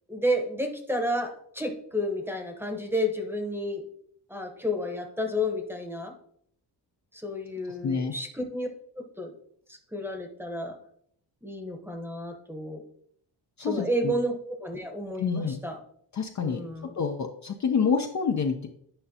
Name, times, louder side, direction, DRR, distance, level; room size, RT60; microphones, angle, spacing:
voice 1, 0.1-3.8 4.3-6.1 7.1-8.7 9.0-9.3 9.7-10.8 11.4-12.8 13.6-15.8 16.4-16.9, equal, 5° right, 4 dB, 1.0 m, -31 dB
voice 2, 7.8-8.1 13.6-14.1 15.2-15.6 16.1-16.6 17.0-18.7, left 5 dB, 40° left, 4 dB, 0.6 m, -27 dB
9.0 x 5.4 x 2.8 m, 0.65 s
cardioid pair, 125°, 44 cm